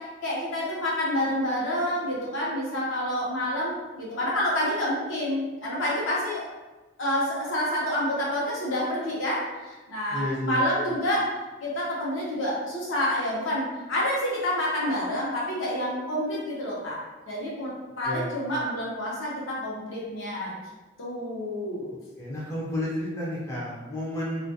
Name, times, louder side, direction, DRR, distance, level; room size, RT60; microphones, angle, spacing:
voice 1, 0.0-6.4 7.0-11.3 11.6-17.0 17.3-20.6 21.0-21.9, left 1 dB, 70° left, -6 dB, 0.8 m, -28 dB
voice 2, 10.1-10.6 18.0-18.3 22.2-24.5, left 1 dB, 15° left, -7 dB, 0.4 m, -31 dB
2.4 x 2.2 x 2.7 m, 1.2 s
head